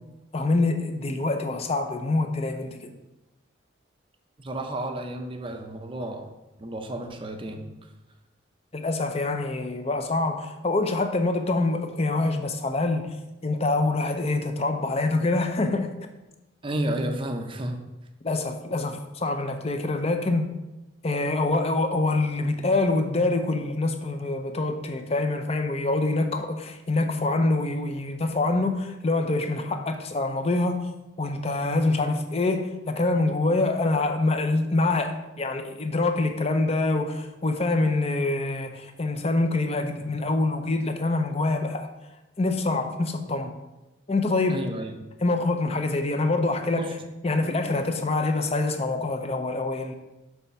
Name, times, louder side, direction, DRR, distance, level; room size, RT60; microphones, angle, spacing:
voice 1, 0.3-2.9 8.7-13.2 13.4-15.9 18.2-20.5 21.0-30.9 31.2-41.9 42.4-43.6 44.1-44.6 45.2-46.8 47.2-49.9, left 2 dB, 30° left, 6 dB, 0.6 m, -25 dB
voice 2, 4.4-6.3 6.6-7.7 16.6-17.8 44.5-45.1 46.8-47.0, right 1 dB, 25° right, 5 dB, 0.6 m, -32 dB
7.0 x 3.4 x 5.7 m, 1.0 s
head